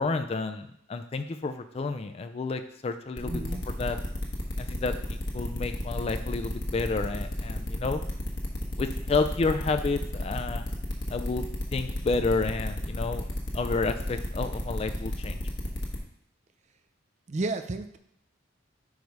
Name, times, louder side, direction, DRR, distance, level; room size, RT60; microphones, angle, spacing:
voice 1, 0.0-4.0 4.6-8.0 8.8-10.7 11.1-11.4 11.7-13.2 13.5-15.4, left 3 dB, 30° left, 8 dB, 0.3 m, -30 dB
sound 1, 3.2-16.0, left 1 dB, 65° left, 1.2 m, -32 dB
voice 2, 3.2-3.6 17.3-18.0, right 2 dB, 35° right, 9 dB, 0.5 m, -32 dB
4.8 x 4.6 x 5.3 m, 0.73 s
head